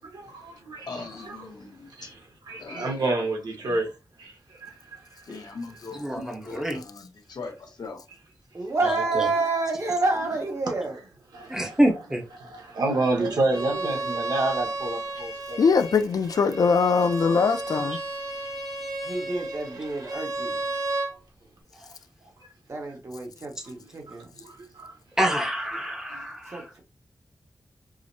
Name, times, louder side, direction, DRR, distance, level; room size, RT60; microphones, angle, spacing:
voice 1, 0.1-1.4 2.0-2.1 2.5-3.9 4.2-4.3 4.6-4.7 11.3-11.8 12.4-15.6 24.4-24.9 26.1-26.2, right 2 dB, 85° right, 1.0 m, -29 dB
voice 2, 0.9-1.9 2.6-3.0 5.3-8.0, left 3 dB, 80° left, 0.9 m, -40 dB
voice 3, 6.0-6.8 8.8-9.3 11.5-12.2 25.2-26.6, right 1 dB, 10° right, 0.8 m, -26 dB
voice 4, 8.5-11.0 12.9-14.2 19.0-20.6 22.7-24.3 26.5-26.8, right 3 dB, 45° right, 1.0 m, -29 dB
Bowed string instrument, 13.5-21.1, right 2 dB, 65° right, 0.8 m, -33 dB
voice 5, 15.6-18.0, left 5 dB, 65° left, 0.4 m, -21 dB
4.8 x 2.0 x 2.6 m
wide cardioid pair, 130°, 7 cm